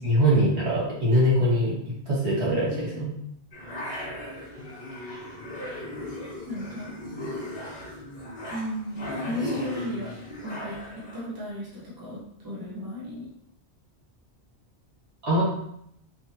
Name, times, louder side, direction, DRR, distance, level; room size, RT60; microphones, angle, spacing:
voice 1, 0.0-1.7 2.1-3.1 15.2-15.4, equal, 75° right, -7 dB, 1.9 m, -22 dB
sound 1, 3.5-11.2, left 1 dB, 45° left, 1.4 m, -36 dB
voice 2, 6.4-6.9 8.5-10.1 10.4-13.3, left 1 dB, 20° right, -7 dB, 0.9 m, -35 dB
3.4 x 3.2 x 2.8 m, 0.72 s
omnidirectional pair, 1.1 m